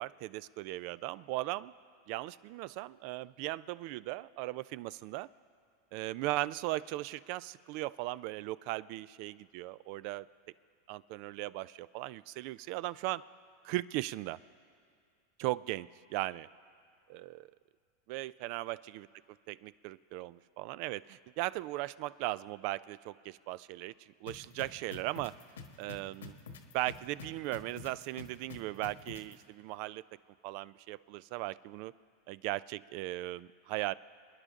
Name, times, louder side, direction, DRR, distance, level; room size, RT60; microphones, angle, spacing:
voice 1, 0.0-1.7 2.1-5.3 5.9-10.3 10.9-13.2 13.6-14.4 15.4-16.5 17.1-17.5 18.1-19.1 19.5-25.3 25.8-26.4 26.7-30.0 30.4-31.9 32.3-33.9, right 17 dB, 55° right, 19 dB, 0.4 m, -38 dB
sound 1, 24.3-29.3, left 5 dB, 85° left, 1.4 m, -46 dB
27.5 x 10.0 x 3.7 m, 2.3 s
hypercardioid pair, 100°, 0 cm